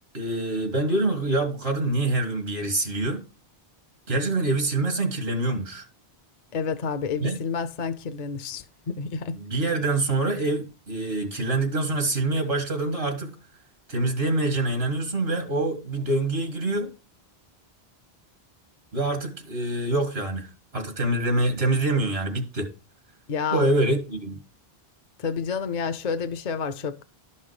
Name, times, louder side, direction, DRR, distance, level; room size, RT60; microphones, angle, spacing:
voice 1, 0.1-3.2 4.1-5.8 7.2-7.4 9.3-13.4 13.9-16.9 18.9-22.7 23.5-24.4, right 2 dB, 80° right, 2.1 m, -25 dB
voice 2, 6.5-9.4 23.3-23.7 25.2-27.0, left 6 dB, 50° left, 0.7 m, -29 dB
12.0 x 5.6 x 4.9 m
omnidirectional pair, 1.0 m